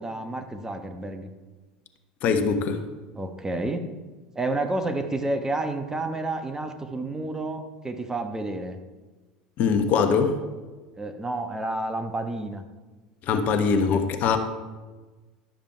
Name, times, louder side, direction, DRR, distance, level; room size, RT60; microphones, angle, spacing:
voice 1, 0.0-1.3 3.1-3.9 4.3-8.8 11.0-12.6, right 2 dB, 15° right, 6 dB, 1.0 m, -30 dB
voice 2, 2.2-2.8 9.6-10.4 13.3-14.4, left 5 dB, 50° left, 7 dB, 1.1 m, -22 dB
11.5 x 7.1 x 4.5 m, 1.3 s
hypercardioid pair, 75°, 4 cm